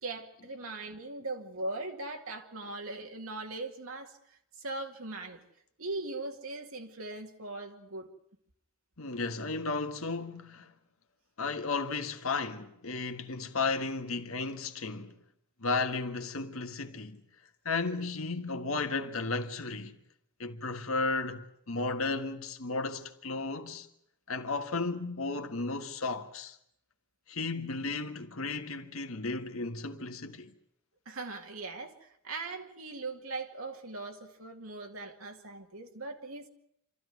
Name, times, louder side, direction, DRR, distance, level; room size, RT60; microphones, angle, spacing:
voice 1, 0.0-5.4 5.8-8.1 31.1-36.5, right 2 dB, 85° right, 2.3 m, -40 dB
voice 2, 9.0-10.7 11.4-15.2 15.6-17.2 17.6-20.0 20.4-23.9 24.3-26.6 27.3-30.5, left 3 dB, 80° left, 1.6 m, -34 dB
26.5 x 14.0 x 9.4 m
head